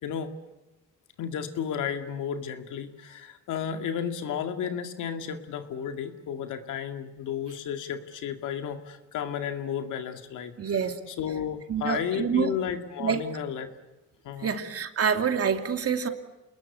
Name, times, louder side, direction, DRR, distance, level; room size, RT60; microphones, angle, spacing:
voice 1, 1.2-10.5 11.1-13.7 14.2-14.6, left 8 dB, 80° left, 6 dB, 2.3 m, -33 dB
voice 2, 10.6-11.0 11.7-12.5 13.0-13.2 14.4-16.1, right 7 dB, 50° right, 6 dB, 2.8 m, -27 dB
28.0 x 20.5 x 8.4 m, 1.1 s
cardioid pair, 90°, 30 cm